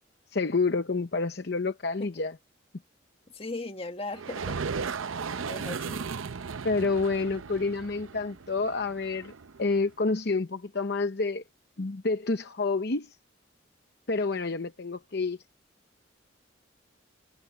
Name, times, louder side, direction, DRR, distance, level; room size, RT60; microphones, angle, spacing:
voice 1, 0.3-2.4 6.6-9.3 9.6-11.4 11.8-13.1 14.1-15.4, left 3 dB, 55° left, 0.8 m, -28 dB
voice 2, 3.3-4.6 5.5-6.1, left 2 dB, 30° left, 1.7 m, -37 dB
sound 1, 4.1-9.8, right 5 dB, 90° right, 0.7 m, -36 dB
head